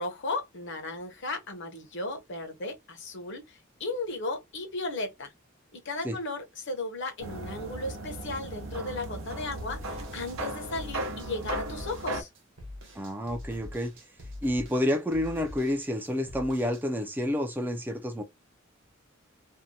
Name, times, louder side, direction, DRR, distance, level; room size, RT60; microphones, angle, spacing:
voice 1, 0.0-5.3 5.7-12.3, left 2 dB, 60° left, 0.8 m, -35 dB
sound 1, 7.2-12.2, right 1 dB, 80° right, 0.6 m, -36 dB
sound 2, 9.6-16.8, left 1 dB, 65° right, 1.0 m, -44 dB
voice 2, 12.9-13.9 14.4-18.2, left 1 dB, 10° right, 0.3 m, -29 dB
2.7 x 2.1 x 2.7 m
head